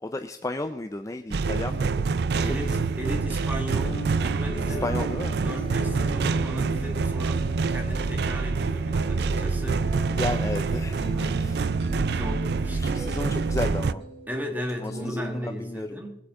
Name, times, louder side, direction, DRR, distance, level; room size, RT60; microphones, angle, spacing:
voice 1, 0.0-2.1 2.8-2.9 4.7-5.4 10.2-11.6 12.8-14.0 14.8-16.0, left 2 dB, 20° left, 7 dB, 0.4 m, -33 dB
sound 1, 1.3-13.9, right 4 dB, 60° right, 0.4 m, -26 dB
voice 2, 2.4-5.0 5.4-10.2 11.1-11.4 12.1-13.0 14.3-16.2, equal, 10° right, 2 dB, 1.8 m, -36 dB
sound 2, 3.7-11.1, left 2 dB, 60° left, 2.7 m, -42 dB
sound 3, 4.4-15.5, right 2 dB, 30° right, 5.4 m, -42 dB
21.0 x 8.1 x 3.7 m, 0.83 s
head